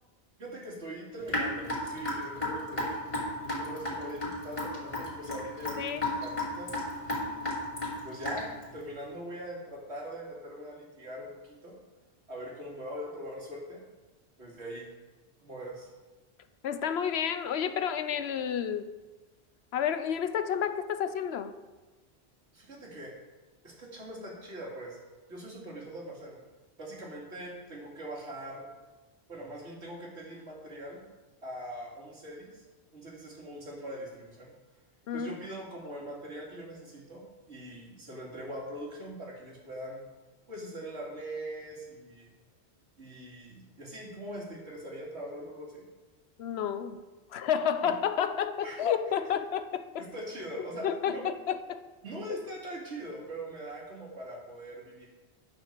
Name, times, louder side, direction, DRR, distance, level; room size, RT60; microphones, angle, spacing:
voice 1, 0.4-2.9 3.4-7.4 8.0-11.8 12.3-13.8 14.4-14.9 15.4-15.9 22.5-23.1 23.6-25.0 25.3-26.4 26.8-28.7 29.3-31.0 31.4-32.6 32.9-34.5 35.1-40.0 40.5-42.3 43.0-45.9 47.8-47.9 48.6-48.8 49.1-49.2 50.0-51.2 52.0-55.1, right 1 dB, 90° right, -3 dB, 2.8 m, -42 dB
Raindrop / Drip, 1.3-8.6, left 2 dB, 30° left, 3.1 m, -33 dB
voice 2, 16.6-18.9 19.7-21.5 35.1-35.3 46.4-47.0 47.3-50.1 50.6-51.8, left 8 dB, 70° left, 11 dB, 0.9 m, -30 dB
9.7 x 6.3 x 6.7 m, 1.2 s
omnidirectional pair, 1.1 m